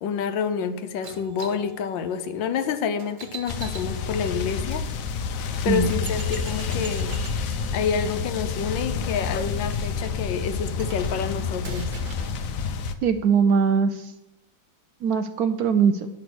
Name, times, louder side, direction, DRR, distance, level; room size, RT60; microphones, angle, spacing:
voice 1, 0.0-4.9 5.6-7.2 7.7-12.0, left 7 dB, 85° left, 10 dB, 1.5 m, -28 dB
sound 1, 1.0-4.8 5.4-5.5 5.8-12.4, right 5 dB, 55° right, 1.6 m, -43 dB
sound 2, 3.5-12.9, left 5 dB, 60° left, 0.9 m, -29 dB
voice 2, 13.0-14.1 15.0-16.1, right 6 dB, 70° right, 9 dB, 0.9 m, -21 dB
9.8 x 6.0 x 6.1 m, 0.92 s
omnidirectional pair, 2.0 m